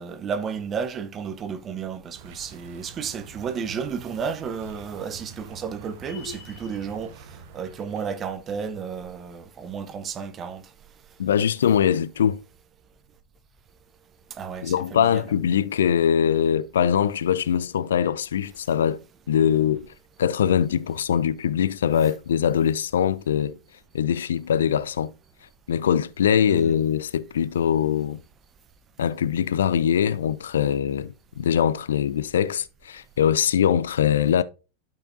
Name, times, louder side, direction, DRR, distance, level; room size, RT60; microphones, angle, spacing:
voice 1, 0.0-7.3 7.5-10.6 14.3-15.2 26.5-26.8, right 6 dB, 25° right, 0.9 m, -32 dB
sound 1, 2.1-8.2, right 5 dB, 50° right, 1.2 m, -46 dB
sound 2, 6.1-6.9, left 4 dB, 80° left, 2.7 m, -41 dB
voice 2, 11.2-12.4 14.6-19.0 19.3-19.9 20.2-23.6 23.9-25.1 25.7-28.2 29.0-34.4, left 9 dB, 65° left, 0.4 m, -22 dB
12.0 x 5.5 x 2.7 m
figure-of-eight pair, 90°, 0 cm